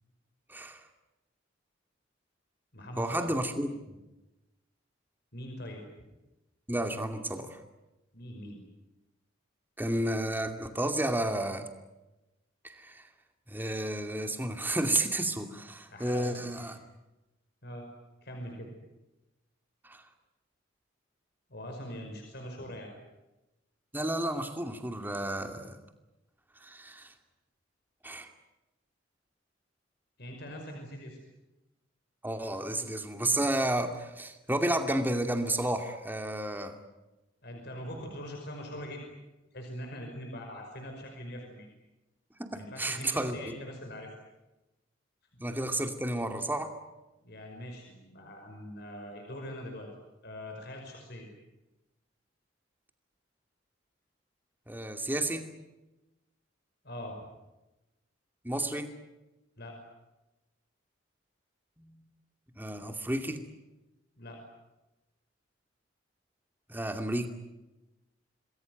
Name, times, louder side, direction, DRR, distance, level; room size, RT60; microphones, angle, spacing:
voice 1, 0.5-0.8 3.0-4.0 6.7-7.6 9.8-11.7 12.6-13.1 13.5-16.8 19.8-20.0 23.9-25.8 26.6-27.1 28.0-28.3 32.2-36.7 42.4-43.6 45.4-46.7 54.7-55.5 58.4-58.9 61.8-62.0 62.6-63.4 66.7-67.3, right 1 dB, 10° right, 6 dB, 2.5 m, -32 dB
voice 2, 2.7-3.3 5.3-5.8 8.1-8.6 15.9-16.7 17.6-17.9 18.2-18.7 21.5-22.9 30.2-31.2 37.4-39.0 39.5-41.7 42.5-44.1 47.2-49.9 50.2-51.3 56.8-57.2 59.6-59.8 64.2-64.4, equal, 55° left, 2 dB, 5.5 m, -42 dB
27.5 x 21.0 x 9.5 m, 1.0 s
head